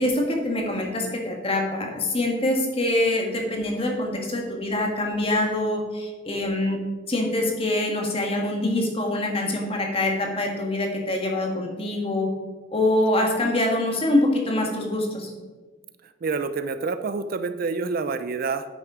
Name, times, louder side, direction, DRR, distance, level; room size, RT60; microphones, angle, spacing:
voice 1, 0.0-6.8 7.1-12.3 12.7-15.3, left 1 dB, 30° left, 1 dB, 1.5 m, -24 dB
voice 2, 16.2-18.7, right 4 dB, 45° right, 11 dB, 0.4 m, -27 dB
9.1 x 6.3 x 4.9 m, 1.3 s
head